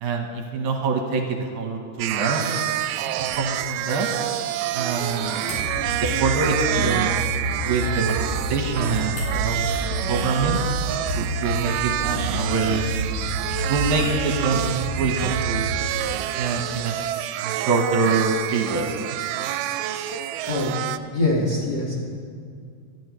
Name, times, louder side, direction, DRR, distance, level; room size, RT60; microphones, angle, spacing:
voice 1, 0.0-2.8 3.1-4.1 4.7-5.7 6.0-7.2 7.4-10.6 11.2-13.3 13.7-14.7 14.9-15.7 16.4-17.1 17.4-19.2, right 4 dB, 70° right, 2 dB, 2.5 m, -25 dB
sound 1, 2.0-11.2, equal, 60° left, 5.1 m, -45 dB
sound 2, 2.0-21.0, right 12 dB, 90° right, 2.1 m, -28 dB
sound 3, 5.5-15.8, equal, 25° right, 3.7 m, -29 dB
voice 2, 21.1-22.0, left 2 dB, 35° left, -5 dB, 1.9 m, -24 dB
18.5 x 13.5 x 3.2 m, 2.2 s
omnidirectional pair, 3.7 m